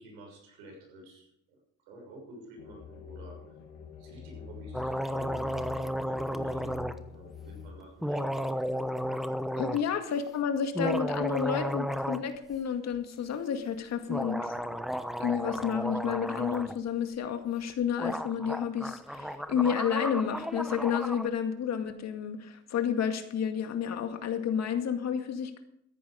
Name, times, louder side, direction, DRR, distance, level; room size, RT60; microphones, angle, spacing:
voice 1, 0.0-1.6 1.9-3.4 4.0-5.7 6.1-6.7 7.1-8.7, right 1 dB, 85° right, 0 dB, 6.6 m, -50 dB
sound 1, 2.6-7.7, left 7 dB, 80° left, 2.4 m, -46 dB
sound 2, 4.7-6.9 8.0-9.8 10.6-12.3 12.5-12.6 14.1-16.7 17.7-17.8 18.0-21.3, equal, ahead, 1.0 m, -33 dB
voice 2, 9.6-14.5 15.2-25.6, left 8 dB, 55° left, 6 dB, 2.1 m, -31 dB
14.0 x 10.5 x 5.1 m, 0.73 s
supercardioid pair, 80°, 32 cm